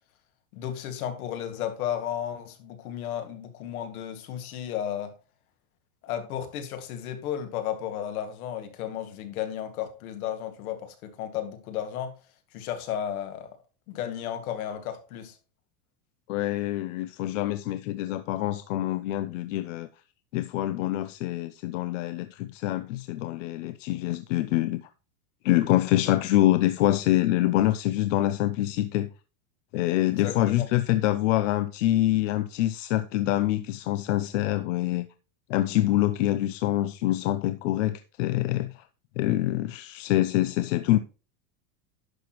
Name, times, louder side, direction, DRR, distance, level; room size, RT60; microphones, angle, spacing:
voice 1, 0.5-5.1 6.0-12.1 12.5-13.5 13.9-15.3 30.1-30.7, left 10 dB, 75° left, 2.1 m, -33 dB
voice 2, 16.3-19.9 20.3-24.8 25.4-29.1 29.7-35.1 35.5-38.8 39.2-41.0, left 14 dB, 55° left, 0.6 m, -25 dB
11.0 x 6.1 x 3.0 m
supercardioid pair, 175°, 44 cm